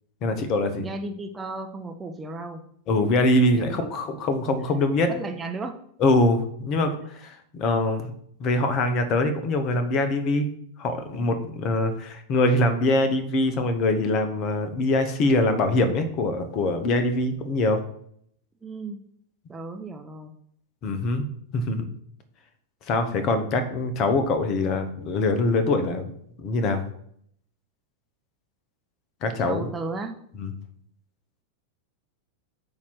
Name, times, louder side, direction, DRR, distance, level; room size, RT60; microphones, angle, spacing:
voice 1, 0.2-0.8 2.9-5.1 6.0-8.1 8.4-10.5 10.8-17.8 20.8-21.3 21.5-21.9 22.9-26.1 26.4-26.8 29.2-29.7 30.4-30.5, left 2 dB, 35° left, 8 dB, 1.0 m, -23 dB
voice 2, 0.8-2.6 3.5-3.8 4.7-4.8 5.1-5.7 18.6-19.0 19.5-20.3 29.4-30.1, right 3 dB, 15° right, 4 dB, 0.7 m, -34 dB
8.5 x 2.9 x 6.1 m, 0.67 s
figure-of-eight pair, 90°, 0 cm